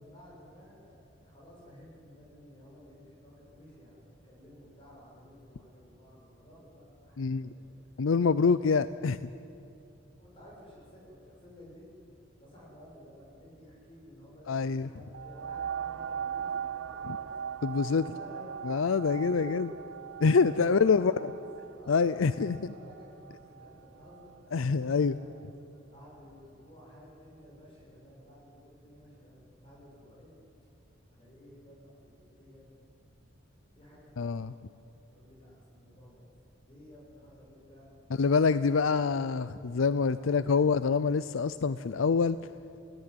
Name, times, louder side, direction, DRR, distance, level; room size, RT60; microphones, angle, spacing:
voice 1, 0.0-8.2 10.2-11.9 12.3-17.3 18.0-19.9 20.4-21.4 21.7-24.3 25.0-25.3 25.9-30.4 31.1-32.9 33.7-34.6 35.1-36.3 36.6-37.9 40.1-40.4, equal, 25° left, -4 dB, 7.1 m, -53 dB
voice 2, 7.2-7.5 8.0-9.3 14.5-14.9 17.6-18.0 18.6-19.7 20.2-21.1 21.9-22.7 24.5-25.2 34.2-34.5 38.2-42.4, left 5 dB, 80° left, 15 dB, 0.5 m, -26 dB
sound 1, 15.1-24.4 25.0-25.1, right 8 dB, 80° right, 0.8 m, -40 dB
28.0 x 17.5 x 9.7 m, 2.6 s
head